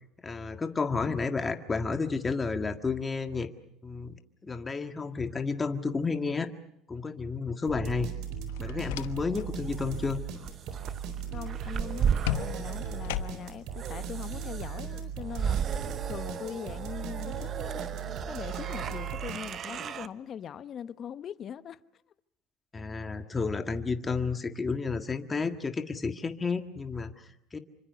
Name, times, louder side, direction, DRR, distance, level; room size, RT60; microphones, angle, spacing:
voice 1, 0.2-3.5 3.8-6.5 6.9-8.1 8.6-10.2 22.7-27.6, left 4 dB, 25° left, 1.9 m, -31 dB
sound 1, 7.7-19.9, right 7 dB, 65° right, 4.3 m, -38 dB
sound 2, 8.5-9.5 9.8-10.2 12.2-13.7, left 15 dB, 85° left, 1.0 m, -36 dB
sound 3, 9.0-20.1, right 8 dB, 45° right, 0.9 m, -35 dB
voice 2, 11.3-15.8 16.1-21.8, left 8 dB, 45° left, 1.0 m, -41 dB
27.0 x 25.0 x 6.9 m
supercardioid pair, 90°, 0 cm